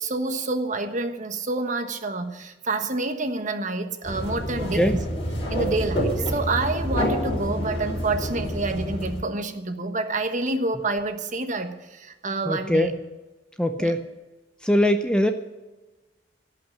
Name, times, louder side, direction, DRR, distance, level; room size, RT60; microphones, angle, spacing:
voice 1, 0.0-5.0 5.5-12.9 13.8-14.0, right 2 dB, 45° right, 7 dB, 1.3 m, -28 dB
sound 1, 4.0-9.2, equal, 35° left, 5.4 m, -28 dB
voice 2, 12.4-13.0 13.6-14.0 14.6-15.3, equal, 5° left, 6 dB, 0.6 m, -21 dB
17.5 x 5.8 x 10.0 m, 1.2 s
head